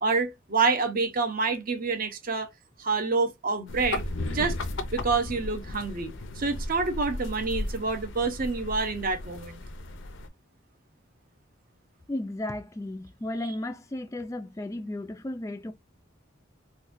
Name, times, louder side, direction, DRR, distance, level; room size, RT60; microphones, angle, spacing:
voice 1, 0.0-2.5 2.8-4.0 4.3-4.6 4.9-9.6, right 4 dB, 45° right, 0.7 m, -27 dB
sound 1, 3.7-10.3, left 2 dB, 65° left, 0.5 m, -35 dB
voice 2, 12.1-15.7, left 1 dB, 15° left, 0.3 m, -34 dB
3.9 x 2.2 x 2.5 m
head